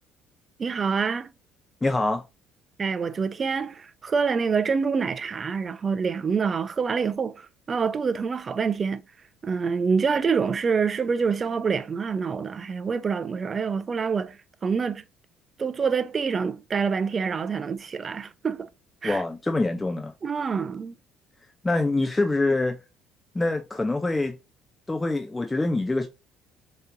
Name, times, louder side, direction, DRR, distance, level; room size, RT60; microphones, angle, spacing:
voice 1, 0.6-1.3 2.8-9.0 9.4-15.0 15.6-18.7 19.0-19.2 20.2-21.0, right 5 dB, 35° right, 0.6 m, -26 dB
voice 2, 1.8-2.2 19.0-20.1 21.6-22.8 23.3-24.3 24.9-26.1, left 2 dB, 15° left, 0.6 m, -25 dB
6.5 x 3.0 x 2.6 m
supercardioid pair, 75°, 0 cm